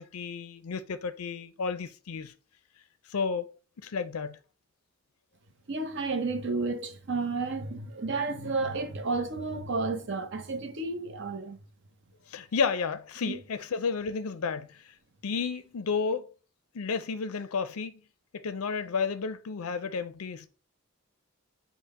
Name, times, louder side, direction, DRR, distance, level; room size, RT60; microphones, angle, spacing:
voice 1, 0.0-2.3 3.1-3.5 3.8-4.4 12.3-14.9 15.2-16.3 16.7-18.0 18.3-20.5, left 5 dB, 85° left, 0.5 m, -32 dB
voice 2, 5.7-11.6 13.2-13.4, right 3 dB, 55° right, 0.7 m, -31 dB
5.3 x 2.1 x 4.6 m
head